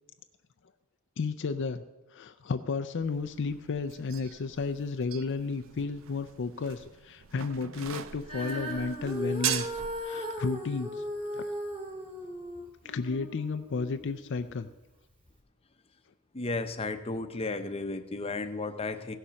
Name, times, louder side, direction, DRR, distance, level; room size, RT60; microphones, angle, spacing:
voice 1, 1.2-1.8 2.1-11.0 11.3-11.5 12.8-14.7, left 4 dB, 55° left, 9 dB, 0.5 m, -33 dB
sound 1, 3.0-10.0, right 10 dB, 60° right, 0.6 m, -40 dB
Female singing, 8.2-14.6 15.3-15.4, equal, 25° right, 2.4 m, -37 dB
voice 2, 16.3-19.1, left 3 dB, 25° left, 8 dB, 0.8 m, -34 dB
16.0 x 7.0 x 6.3 m, 1.0 s
head